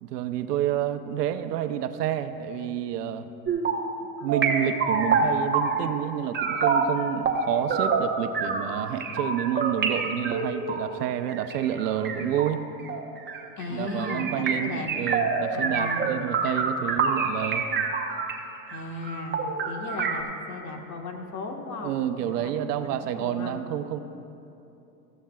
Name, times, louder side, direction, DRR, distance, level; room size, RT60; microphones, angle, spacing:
voice 1, 0.0-3.3 4.2-12.6 13.7-17.7 21.8-24.0, right 10 dB, 85° right, 10 dB, 0.7 m, -29 dB
sound 1, 3.5-3.9 4.3-6.0 6.3-18.4 18.7-18.8 19.0-20.2, right 5 dB, 25° right, 1.0 m, -27 dB
voice 2, 13.6-14.9 15.5-16.1 18.7-22.5 22.8-23.5, left 3 dB, 40° left, 3 dB, 1.5 m, -36 dB
16.0 x 14.0 x 2.3 m, 2.9 s
supercardioid pair, 105°, 46 cm